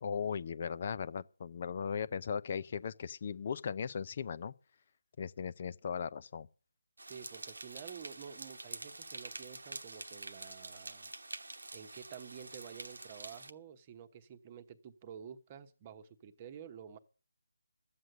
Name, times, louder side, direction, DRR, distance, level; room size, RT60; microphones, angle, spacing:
voice 1, 0.0-4.5 5.2-6.5, left 6 dB, 35° left, 0.6 m, -38 dB
sound 1, 7.0-13.5, right 2 dB, 80° right, 1.1 m, -47 dB
voice 2, 7.1-11.1 11.7-17.0, right 8 dB, 25° right, 1.1 m, -50 dB
13.0 x 8.0 x 7.8 m
figure-of-eight pair, 160°, 0 cm